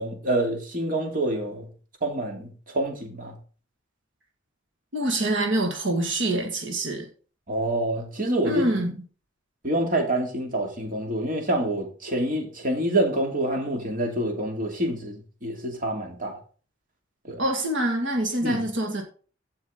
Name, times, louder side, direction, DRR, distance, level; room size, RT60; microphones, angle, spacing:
voice 1, 0.0-1.7 2.0-3.4 7.5-8.7 9.6-16.4 17.3-17.4 18.4-18.6, right 1 dB, 45° right, 2.6 m, -27 dB
voice 2, 4.9-7.1 8.4-8.9 17.4-19.0, right 1 dB, 70° right, 2.1 m, -25 dB
15.5 x 5.7 x 3.9 m
head